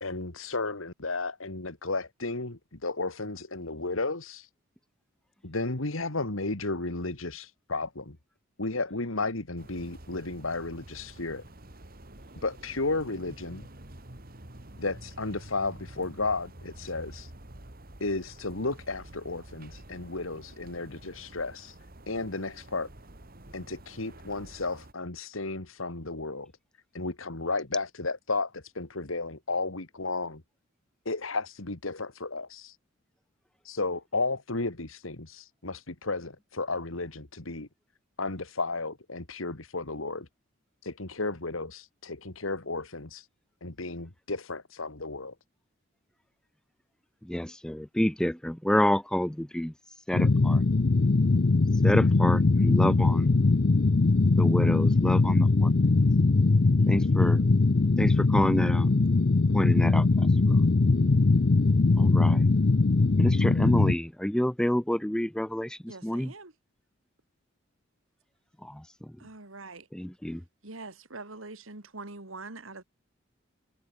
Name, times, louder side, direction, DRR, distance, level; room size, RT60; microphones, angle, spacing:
voice 1, 0.0-4.5 5.4-8.2 8.6-11.4 12.4-13.7 14.8-17.3 18.0-21.8 22.1-22.9 23.5-26.5 26.9-30.4 31.1-32.8 33.6-37.7 38.2-40.3 40.8-43.3 43.6-45.3, left 3 dB, 85° left, 2.5 m, -33 dB
sound 1, 9.6-24.9, right 1 dB, 45° right, 2.8 m, -48 dB
voice 2, 47.3-49.7 50.1-50.6 51.8-53.3 54.4-55.7 56.9-57.4 58.0-59.0 59.5-60.6 62.0-62.4 63.2-66.3 68.7-68.8 69.9-70.4, equal, 5° left, 0.5 m, -28 dB
sound 2, 50.1-63.9, left 3 dB, 50° left, 0.6 m, -21 dB
voice 3, 65.9-66.5 69.2-69.9 70.6-72.8, right 3 dB, 80° right, 2.9 m, -43 dB
head